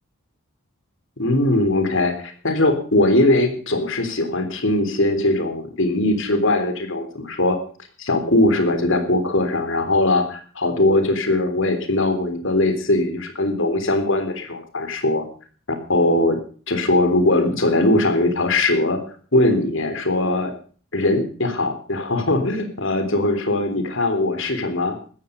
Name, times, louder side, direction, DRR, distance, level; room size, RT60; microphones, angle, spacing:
voice 1, 1.2-7.6 8.0-15.2 15.7-16.4 16.7-19.0 19.3-20.5 20.9-25.0, left 2 dB, 60° left, 7 dB, 3.6 m, -20 dB
16.0 x 14.0 x 5.2 m, 0.41 s
head